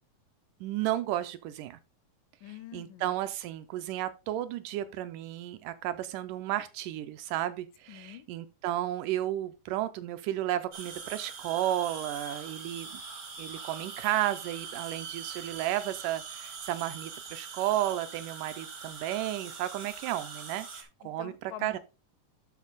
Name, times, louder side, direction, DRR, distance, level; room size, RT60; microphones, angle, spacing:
voice 1, 0.6-1.8 2.7-13.0 13.4-21.8, right 13 dB, 80° right, 1.9 m, -33 dB
voice 2, 2.4-3.2 7.9-8.3 21.0-21.8, left 14 dB, 80° left, 2.1 m, -46 dB
sound 1, 10.7-20.8, right 5 dB, 65° right, 0.9 m, -43 dB
12.0 x 4.0 x 3.9 m
omnidirectional pair, 4.0 m